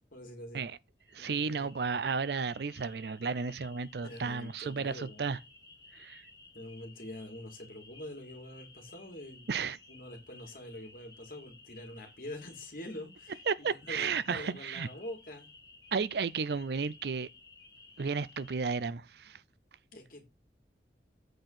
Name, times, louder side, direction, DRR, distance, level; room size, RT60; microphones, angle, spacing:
voice 1, 0.1-0.6 1.2-1.7 4.0-5.3 6.5-9.5 9.9-15.5 19.9-20.2, left 1 dB, 50° left, 2.7 m, -45 dB
sound 1, 1.0-18.7, left 3 dB, 20° left, 2.3 m, -56 dB
voice 2, 1.1-5.4 5.9-6.2 9.5-9.8 13.5-14.9 15.9-17.3 18.0-19.4, right 5 dB, 65° right, 0.5 m, -33 dB
8.0 x 4.4 x 5.8 m
head